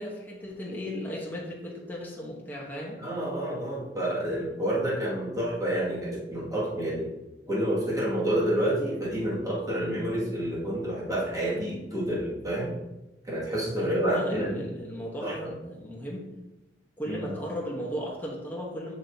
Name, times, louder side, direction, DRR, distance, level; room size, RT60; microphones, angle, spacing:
voice 1, 0.0-3.0 13.8-16.3 17.0-18.9, equal, 10° left, -2 dB, 1.0 m, -35 dB
voice 2, 3.0-7.1 7.5-12.8 13.3-14.7 15.2-15.5 17.0-17.3, right 1 dB, 20° right, -7 dB, 2.1 m, -29 dB
7.3 x 6.2 x 2.8 m, 0.98 s
head